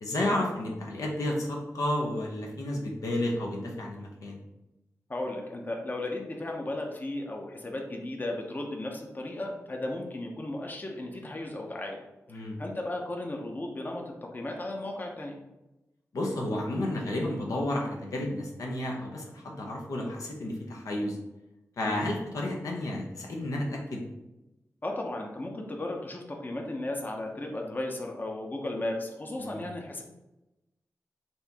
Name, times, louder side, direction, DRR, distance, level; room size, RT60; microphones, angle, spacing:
voice 1, 0.0-4.4 12.3-12.6 16.1-21.2 21.8-24.0 29.4-29.6, left 1 dB, 80° left, -1 dB, 0.8 m, -31 dB
voice 2, 5.1-15.4 21.9-22.1 24.8-30.0, left 1 dB, 30° left, 1 dB, 0.7 m, -35 dB
4.3 x 2.7 x 3.5 m, 0.97 s
cardioid pair, 65°, 6 cm